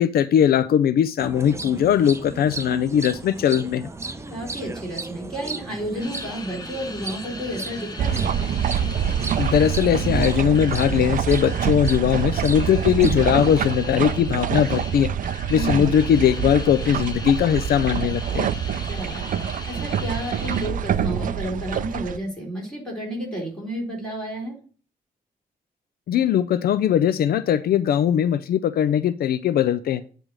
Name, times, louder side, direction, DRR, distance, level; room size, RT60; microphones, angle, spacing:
voice 1, 0.0-3.9 9.4-15.1 15.5-18.5 26.1-30.0, left 9 dB, 75° left, 14 dB, 0.4 m, -20 dB
sound 1, 1.2-13.6, right 3 dB, 15° right, 0.7 m, -35 dB
voice 2, 4.3-8.3 15.5-15.9 18.9-19.4 19.7-24.6, right 1 dB, 5° left, -3 dB, 3.9 m, -31 dB
sound 2, 6.0-20.7, left 3 dB, 25° left, 1.1 m, -40 dB
sound 3, 8.0-22.2, right 9 dB, 60° right, 0.4 m, -26 dB
8.9 x 3.4 x 6.1 m, 0.40 s
cardioid pair, 120°, 16 cm